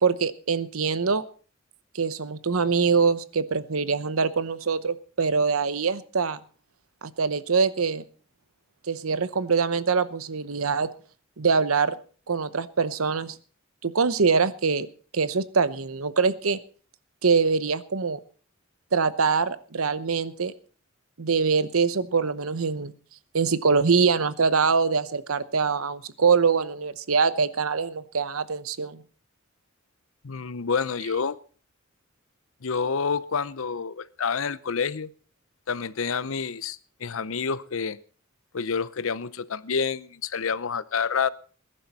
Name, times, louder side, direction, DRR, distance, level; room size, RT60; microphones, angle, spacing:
voice 1, 0.0-1.2 1.9-6.4 7.2-8.0 8.9-10.9 11.4-12.0 12.3-13.4 13.8-14.9 15.1-16.6 17.2-18.2 18.9-20.5 21.2-22.9 23.3-29.0, right 5 dB, 85° right, 15 dB, 0.9 m, -24 dB
voice 2, 30.2-31.4 32.6-35.1 35.7-38.0 38.5-41.3, left 5 dB, 75° left, 17 dB, 0.7 m, -28 dB
20.5 x 11.0 x 4.2 m, 0.40 s
head